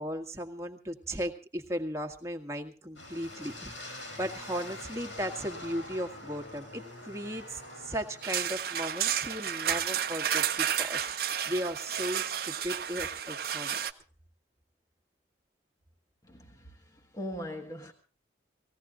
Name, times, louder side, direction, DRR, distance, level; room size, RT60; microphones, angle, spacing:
voice 1, 0.0-13.8, equal, 15° right, 1.7 m, -36 dB
sound 1, 3.0-9.0, left 1 dB, 85° left, 7.1 m, -45 dB
sound 2, 8.2-13.9, right 9 dB, 50° right, 0.8 m, -31 dB
voice 2, 16.2-17.9, equal, 20° left, 1.5 m, -41 dB
19.0 x 16.5 x 3.8 m
head